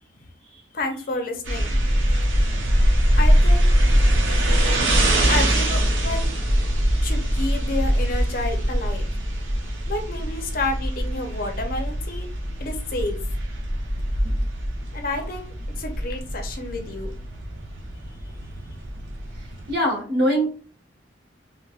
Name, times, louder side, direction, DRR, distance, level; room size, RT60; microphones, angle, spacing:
voice 1, 0.7-1.7 3.2-3.7 5.3-6.3 7.0-9.1 9.9-12.3 12.6-13.2 14.9-17.1, left 2 dB, 45° left, 4 dB, 0.5 m, -30 dB
sound 1, 1.4-19.7, equal, 80° right, 0.8 m, -22 dB
voice 2, 19.4-20.5, equal, 55° right, -3 dB, 1.4 m, -23 dB
4.0 x 2.1 x 2.3 m, 0.38 s
head